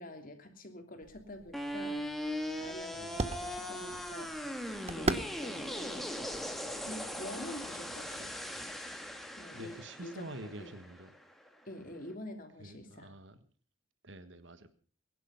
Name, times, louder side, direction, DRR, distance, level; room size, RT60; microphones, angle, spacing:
voice 1, 0.0-2.0 2.6-4.3 5.0-6.3 6.9-8.4 9.4-9.7 10.0-10.7 11.6-13.1, left 1 dB, 40° left, 2.9 m, -46 dB
sound 1, 1.0-7.3, right 2 dB, 30° right, 1.0 m, -40 dB
sound 2, 1.5-11.6, equal, ahead, 1.8 m, -40 dB
voice 2, 2.9-3.3 9.5-11.2 12.6-13.4 14.0-14.7, right 1 dB, 60° right, 1.5 m, -47 dB
22.0 x 11.0 x 5.7 m
head